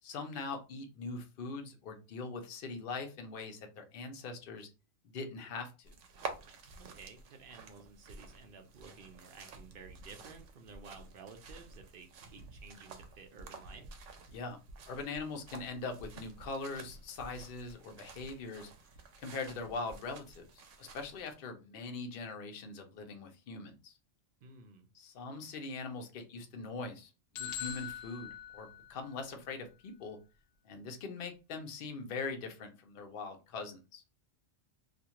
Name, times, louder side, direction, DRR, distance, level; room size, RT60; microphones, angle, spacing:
voice 1, 0.0-4.7 5.1-5.9 14.3-14.6 14.9-18.7 19.2-24.0 24.9-30.2 30.6-34.0, left 4 dB, 55° left, 4 dB, 0.7 m, -42 dB
sound 1, 5.8-21.3, right 4 dB, 85° right, 0.9 m, -50 dB
voice 2, 6.8-14.0 24.4-24.9, right 5 dB, 60° right, 5 dB, 0.7 m, -53 dB
sound 2, 27.4-29.3, left 10 dB, 85° left, 0.9 m, -43 dB
2.5 x 2.3 x 2.8 m, 0.30 s
omnidirectional pair, 1.2 m